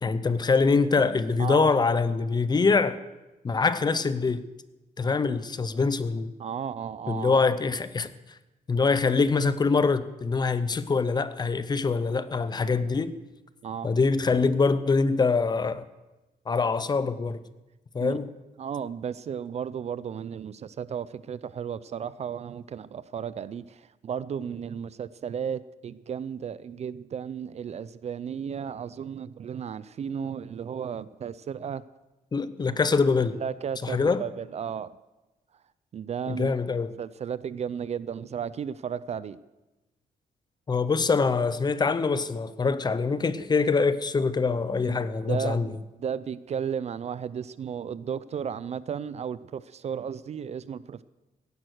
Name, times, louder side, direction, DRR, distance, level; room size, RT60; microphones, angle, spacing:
voice 1, 0.0-3.0 3.4-4.4 5.0-6.3 7.1-8.1 8.7-13.1 13.8-15.9 16.5-17.4 17.9-18.3 32.3-33.4 33.8-34.2 36.3-36.9 40.7-45.7, left 4 dB, 25° left, 0.7 m, -24 dB
voice 2, 1.4-1.8 6.4-7.4 13.6-13.9 18.0-18.2 18.6-31.8 33.4-35.0 35.9-36.5 37.0-39.4 44.8-45.7 46.0-51.0, right 7 dB, 45° right, 0.4 m, -34 dB
16.5 x 11.0 x 6.4 m
cardioid pair, 145°, 16 cm